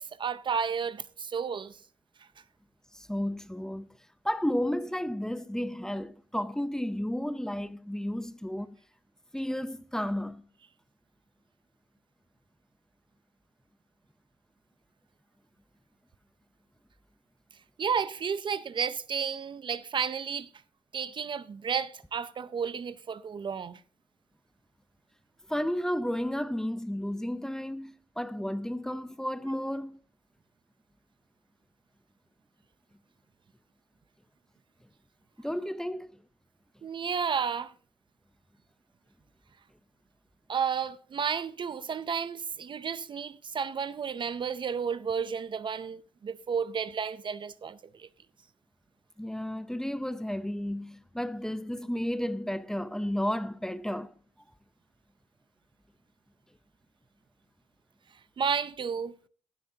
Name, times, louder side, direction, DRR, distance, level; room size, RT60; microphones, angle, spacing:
voice 1, 0.0-1.8 17.8-20.5 20.9-23.8 36.8-37.7 40.5-48.1 58.4-59.1, right 6 dB, 45° right, 0.5 m, -32 dB
voice 2, 2.9-3.9 4.2-8.8 9.3-10.4 25.5-30.0 35.4-36.1 49.2-54.1, left 1 dB, 5° left, 0.6 m, -32 dB
16.0 x 12.0 x 2.8 m
cardioid pair, 100°, 11 cm